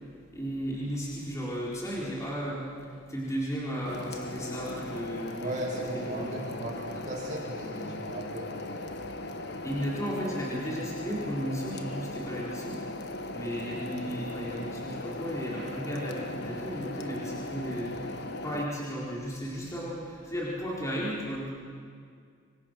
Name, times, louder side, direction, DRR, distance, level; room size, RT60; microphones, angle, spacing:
voice 1, 0.3-5.5 5.9-6.4 9.6-18.1 18.4-21.5, equal, 15° left, -5 dB, 4.1 m, -34 dB
sound 1, 3.8-18.7, left 2 dB, 55° left, 1.5 m, -38 dB
voice 2, 5.4-9.1, right 1 dB, 40° right, -4 dB, 7.8 m, -37 dB
27.0 x 25.5 x 6.6 m, 2.2 s
head